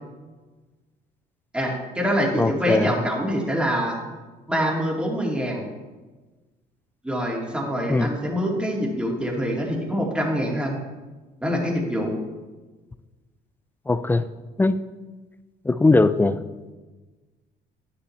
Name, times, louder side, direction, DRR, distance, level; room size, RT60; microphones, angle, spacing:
voice 1, 1.5-4.0 4.5-5.6 7.0-10.8 11.4-12.2, equal, 5° right, -2 dB, 2.2 m, -25 dB
voice 2, 2.4-2.9 7.9-8.1 13.9-14.2 14.6-14.8 15.6-16.4, left 3 dB, 10° left, 13 dB, 0.4 m, -20 dB
11.0 x 10.0 x 3.2 m, 1.3 s
cardioid pair, 110°, 17 cm